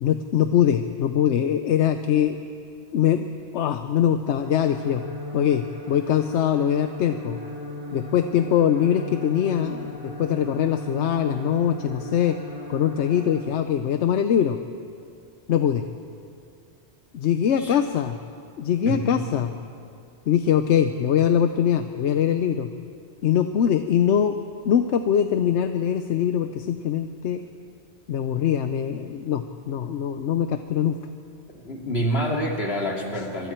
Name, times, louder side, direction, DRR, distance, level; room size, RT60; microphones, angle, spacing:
voice 1, 0.0-2.4 2.9-3.3 3.5-5.0 5.3-7.4 7.9-12.4 12.7-14.6 15.5-15.8 17.1-18.2 18.6-19.5 20.3-22.7 23.2-24.4 24.7-27.4 28.1-31.0, left 9 dB, 80° left, 8 dB, 1.0 m, -22 dB
sound 1, 4.3-13.4, equal, 90° right, 6.9 m, -36 dB
voice 2, 31.5-33.5, equal, 60° left, 0 dB, 2.8 m, -27 dB
25.5 x 23.5 x 4.5 m, 2.5 s
omnidirectional pair, 1.2 m